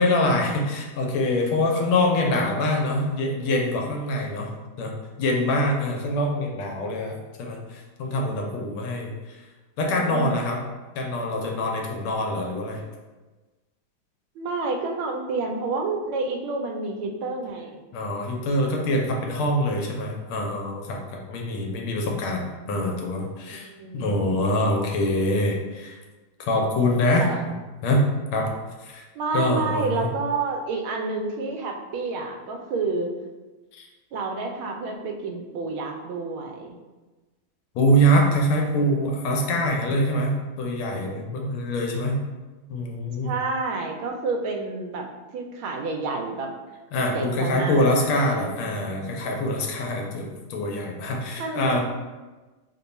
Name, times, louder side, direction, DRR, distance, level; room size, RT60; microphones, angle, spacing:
voice 1, 0.0-4.9 5.2-9.1 9.8-10.6 11.0-12.8 17.9-21.0 21.3-23.7 23.9-26.0 26.5-27.6 27.8-28.1 28.3-28.5 28.8-29.0 29.3-30.1 33.7-33.8 37.7-42.2 42.7-43.3 46.9-51.8, left 1 dB, 85° left, 0 dB, 1.5 m, -24 dB
voice 2, 9.9-10.4 14.4-17.8 23.5-24.5 27.2-27.4 29.1-33.1 34.1-36.8 43.2-45.1 45.3-46.5 47.1-48.7 51.4-51.8, right 3 dB, 80° right, 3 dB, 1.4 m, -29 dB
3.6 x 2.2 x 3.9 m, 1.2 s
omnidirectional pair, 2.2 m